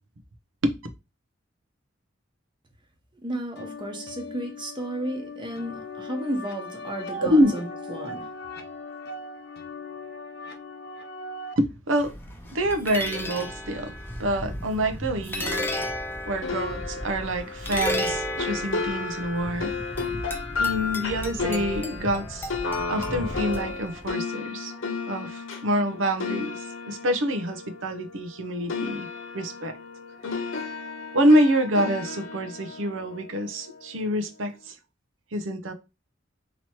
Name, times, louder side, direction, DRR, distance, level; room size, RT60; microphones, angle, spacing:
voice 1, 3.2-8.3, right 1 dB, 25° right, 1.0 m, -33 dB
sound 1, 3.5-11.5, left 2 dB, 55° left, 0.6 m, -39 dB
voice 2, 11.6-12.1 12.5-15.7 16.3-19.7 20.6-22.5 22.9-24.7 25.1-29.1 29.3-29.8 31.1-34.8 35.3-35.7, equal, 85° right, 0.7 m, -26 dB
sound 2, 12.0-24.1, left 1 dB, 10° left, 0.7 m, -33 dB
sound 3, 16.4-28.4 28.7-33.9, left 4 dB, 85° left, 0.9 m, -33 dB
3.0 x 3.0 x 4.3 m
head